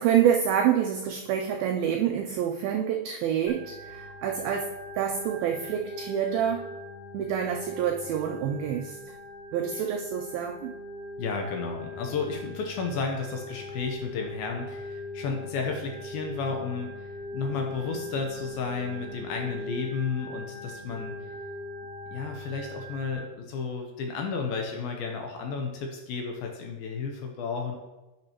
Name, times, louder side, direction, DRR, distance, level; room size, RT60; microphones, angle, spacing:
voice 1, 0.0-6.7 7.1-9.0 9.5-10.7, right 9 dB, 85° right, 3 dB, 2.1 m, -27 dB
Organ, 3.5-23.1, left 1 dB, 35° left, 0.4 m, -40 dB
voice 2, 11.2-21.2 22.1-27.8, left 5 dB, 75° left, 2 dB, 2.4 m, -32 dB
10.0 x 6.6 x 2.9 m, 1.1 s
omnidirectional pair, 4.8 m